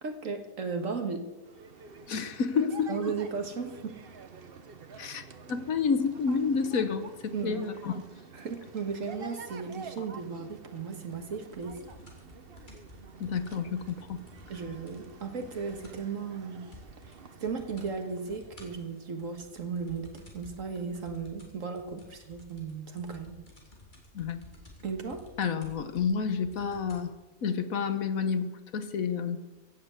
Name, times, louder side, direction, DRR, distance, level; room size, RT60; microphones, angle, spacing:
voice 1, 0.0-1.2 2.9-4.0 7.3-7.7 8.3-11.8 14.5-16.7 17.0-23.4 24.8-25.3, right 5 dB, 60° right, 5 dB, 1.9 m, -36 dB
sound 1, 1.4-19.8, right 5 dB, 45° right, 1.1 m, -49 dB
voice 2, 2.1-2.9 5.0-8.0 10.0-10.1 13.2-14.2 24.1-24.4 25.4-27.1 27.4-29.4, left 6 dB, 70° left, 10 dB, 1.5 m, -30 dB
sound 2, 11.1-16.1 16.4-16.5 16.7-17.2 17.4-17.9 18.3-27.1 27.9-28.0, left 1 dB, 30° left, 3.0 m, -53 dB
15.5 x 7.9 x 8.1 m, 1.1 s
omnidirectional pair, 1.5 m